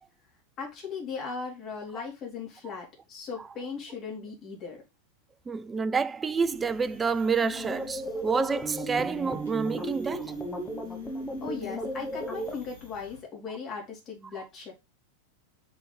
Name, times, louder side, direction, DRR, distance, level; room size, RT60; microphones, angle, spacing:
voice 1, 0.6-4.8 11.4-14.7, left 5 dB, 30° left, 3.5 m, -38 dB
voice 2, 5.5-10.3, right 5 dB, 15° right, 0.3 m, -28 dB
sound 1, 6.4-13.2, left 4 dB, 65° left, 3.0 m, -53 dB
sound 2, 7.4-12.6, right 1 dB, 10° left, 1.3 m, -35 dB
5.9 x 5.4 x 4.0 m
figure-of-eight pair, 90°, 0 cm